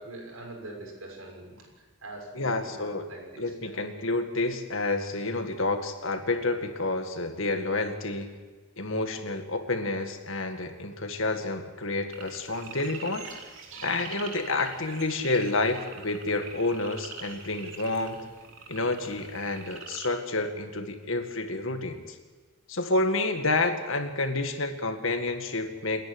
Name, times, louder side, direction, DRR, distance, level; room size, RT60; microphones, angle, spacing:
voice 1, 0.0-1.7 2.0-3.8, right 2 dB, 80° right, 0 dB, 6.4 m, -43 dB
voice 2, 2.3-3.0 3.4-8.3 8.8-13.3 13.8-18.3 18.7-22.2 22.7-26.0, left 2 dB, 65° left, 6 dB, 2.0 m, -29 dB
sound 1, 12.1-20.1, right 5 dB, 60° right, 3.0 m, -44 dB
28.5 x 10.5 x 9.9 m, 1.3 s
head